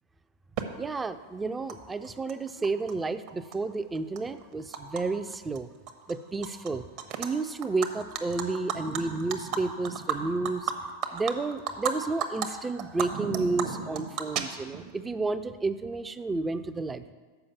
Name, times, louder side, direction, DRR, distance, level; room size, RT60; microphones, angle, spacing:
Animal, 0.6-0.7 1.7-1.8 2.0-2.9 3.3-5.0 5.3-5.6 5.9-6.7 7.0-7.3 7.6-11.9 12.2-12.5 12.8-14.9, right 7 dB, 40° right, 0.7 m, -33 dB
voice 1, 0.8-5.7 6.1-6.8 7.2-10.7 11.1-17.1, right 3 dB, 15° right, 12 dB, 0.4 m, -31 dB
6.8 x 5.1 x 7.0 m, 1.4 s
figure-of-eight pair, 90°, 0 cm